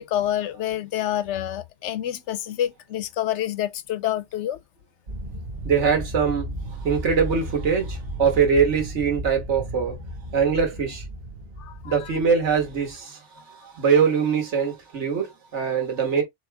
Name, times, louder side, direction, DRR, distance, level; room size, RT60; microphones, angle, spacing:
voice 1, 0.0-4.6 11.6-12.0, left 11 dB, 80° left, 0.9 m, -27 dB
sound 1, 5.1-12.9, right 1 dB, 55° right, 1.4 m, -35 dB
voice 2, 5.6-6.5 6.8-10.0 10.3-11.0 11.8-16.2, right 6 dB, 75° right, 1.7 m, -22 dB
4.3 x 3.1 x 3.3 m
omnidirectional pair, 1.2 m